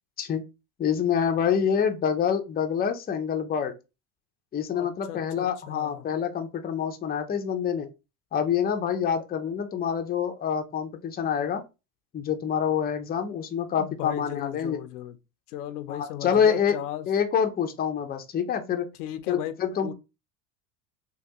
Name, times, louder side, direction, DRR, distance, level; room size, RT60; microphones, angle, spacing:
voice 1, 0.8-3.7 4.5-7.9 8.3-11.6 12.1-14.8 15.9-16.8 17.1-18.9 19.3-19.9, left 7 dB, 20° left, 0.5 m, -26 dB
voice 2, 4.7-6.0 13.8-15.2 15.5-17.1 19.0-19.5 19.8-19.9, left 12 dB, 90° left, 0.6 m, -36 dB
3.3 x 2.3 x 2.8 m
supercardioid pair, 100°, 44 cm